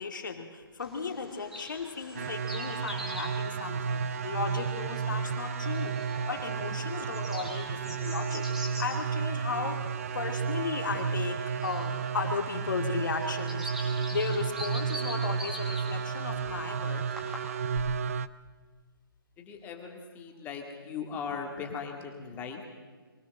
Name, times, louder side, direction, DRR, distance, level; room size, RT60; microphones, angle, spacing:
voice 1, 0.0-5.9 6.3-8.5 8.8-9.8 10.1-17.0, left 5 dB, 55° left, 5 dB, 2.6 m, -35 dB
Bird vocalization bird call bird song, 0.8-17.8, equal, 5° right, 2.4 m, -45 dB
sound 1, 2.1-18.3, right 6 dB, 40° right, 0.5 m, -32 dB
voice 2, 19.4-22.6, left 6 dB, 15° left, 2 dB, 2.2 m, -39 dB
23.5 x 17.0 x 6.6 m, 1.4 s
figure-of-eight pair, 145°, 12 cm